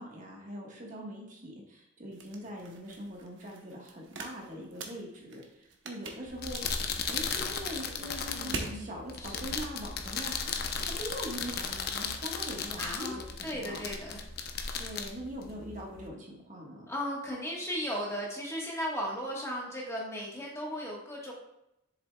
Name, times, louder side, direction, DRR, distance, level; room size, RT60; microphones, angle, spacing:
voice 1, 0.0-6.6 7.1-10.3 10.8-13.8 14.8-16.9, equal, 40° right, -1 dB, 1.4 m, -42 dB
sound 1, 2.1-8.8, right 3 dB, 65° right, 0.9 m, -45 dB
sound 2, 6.3-16.1, left 5 dB, 50° left, 0.7 m, -36 dB
voice 2, 8.3-8.9 9.2-9.4 12.8-14.3 16.9-21.3, equal, 15° left, -3 dB, 1.3 m, -36 dB
7.7 x 7.0 x 2.3 m, 0.84 s
head